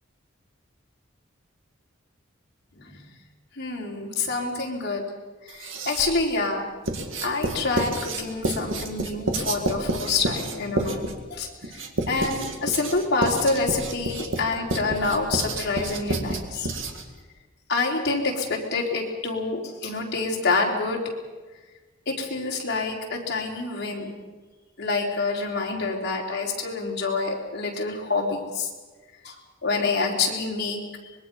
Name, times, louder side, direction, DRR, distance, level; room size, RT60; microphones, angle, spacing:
voice 1, 3.6-5.0 5.4-6.6 7.2-16.7 17.7-21.0 22.1-24.1 24.8-28.7 29.2-29.4 29.6-30.8, left 3 dB, 55° left, -1 dB, 3.9 m, -27 dB
Writing, 5.5-6.2 6.9-17.2, right 2 dB, 70° right, 2.1 m, -29 dB
25.0 x 21.5 x 5.5 m, 1.3 s
head